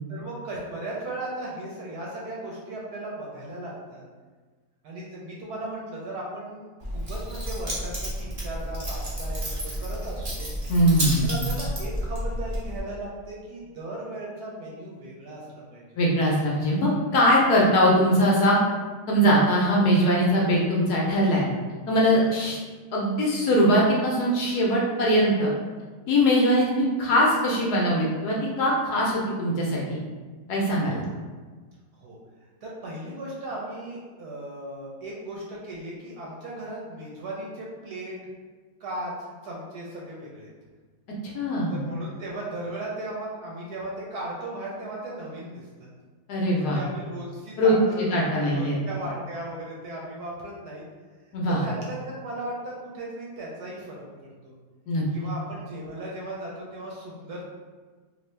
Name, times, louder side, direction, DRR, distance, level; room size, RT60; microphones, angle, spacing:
voice 1, 0.1-4.0 4.8-10.5 11.2-15.8 22.3-22.4 31.9-38.2 38.8-39.1 39.4-40.5 41.7-45.9 46.6-50.8 51.6-54.0 54.4-54.5 55.1-57.4, right 1 dB, 65° right, -4 dB, 1.1 m, -37 dB
Keys jangling, 6.8-12.8, equal, 35° right, 0.6 m, -31 dB
voice 2, 10.7-11.3 16.0-18.6 19.1-21.5 21.9-22.6 22.9-25.5 26.1-30.0 30.5-31.0 41.3-41.8 46.3-46.8 47.6-48.8 51.3-51.6 54.9-55.0, equal, 70° left, -4 dB, 1.1 m, -21 dB
3.0 x 2.6 x 3.2 m, 1.4 s
omnidirectional pair, 2.0 m